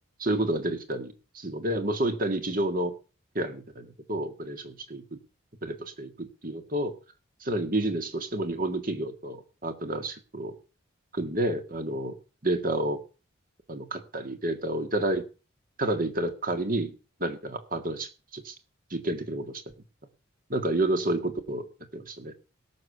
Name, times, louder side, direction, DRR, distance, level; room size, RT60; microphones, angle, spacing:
voice 1, 0.2-2.9 3.4-5.2 5.6-6.9 7.4-10.6 11.1-12.1 12.4-13.0 13.7-15.2 15.8-16.9 17.2-18.5 18.9-19.6 20.5-21.7 21.9-22.3, right 1 dB, 40° right, 8 dB, 1.9 m, -30 dB
17.0 x 6.7 x 6.8 m, 0.35 s
head